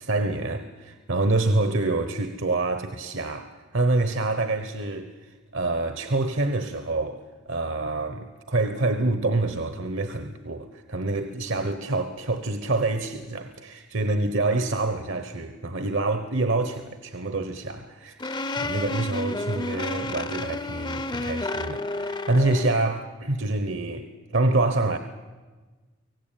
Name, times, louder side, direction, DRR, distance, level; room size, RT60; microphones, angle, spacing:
voice 1, 0.0-7.2 7.5-25.0, right 2 dB, 60° right, 1.1 m, -26 dB
sound 1, 18.2-22.8, left 2 dB, 20° left, 0.7 m, -31 dB
24.5 x 17.5 x 9.2 m
head